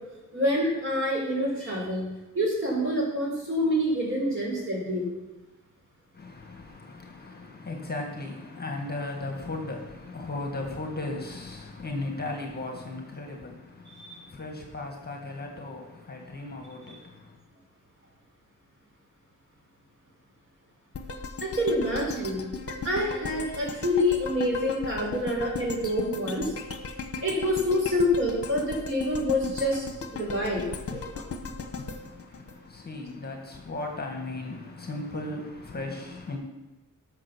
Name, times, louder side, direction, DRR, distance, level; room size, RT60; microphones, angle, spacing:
voice 1, 0.3-2.0 2.3-5.1 14.0-14.2 21.4-22.4 22.8-26.5 27.2-29.9 30.1-31.3, left 1 dB, 40° right, 4.6 m, -27 dB
voice 2, 6.1-17.4 31.7-36.4, left 2 dB, 30° left, 1.7 m, -37 dB
sound 1, 20.9-33.1 33.5-33.6, left 4 dB, 50° left, 1.1 m, -37 dB
12.5 x 6.6 x 6.2 m
wide cardioid pair, 140°, 31 cm